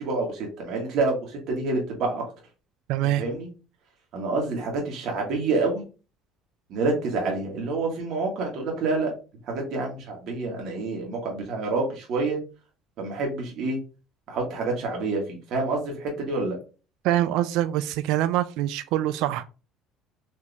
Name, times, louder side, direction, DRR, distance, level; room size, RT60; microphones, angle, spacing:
voice 1, 0.0-2.2 3.2-3.5 4.1-5.8 6.7-9.1 9.5-12.4 13.0-13.8 14.3-16.6, right 3 dB, 60° right, 0 dB, 1.5 m, -27 dB
voice 2, 2.9-3.2 17.0-19.4, right 13 dB, 75° right, 12 dB, 0.3 m, -24 dB
4.4 x 2.9 x 3.4 m, 0.33 s
cardioid pair, 115°, 0 cm